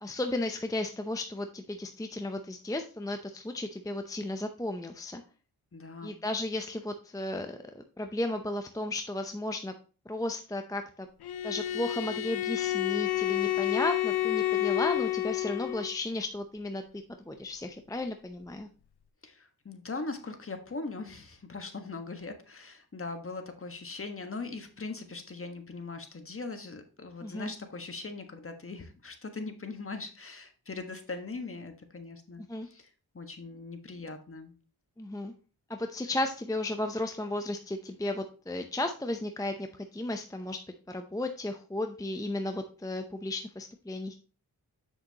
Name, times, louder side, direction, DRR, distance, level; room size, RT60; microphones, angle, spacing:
voice 1, 0.0-5.2 6.0-9.7 10.1-11.1 11.4-16.8 17.2-18.7 27.2-27.5 32.5-32.7 35.0-35.3 35.7-40.6 40.9-44.2, left 1 dB, 10° left, 5 dB, 0.6 m, -34 dB
voice 2, 5.7-6.2 19.2-34.5, left 3 dB, 35° left, 6 dB, 1.5 m, -40 dB
Bowed string instrument, 11.2-16.0, left 14 dB, 80° left, 0.6 m, -29 dB
7.8 x 6.7 x 2.9 m, 0.37 s
cardioid pair, 80°, 38 cm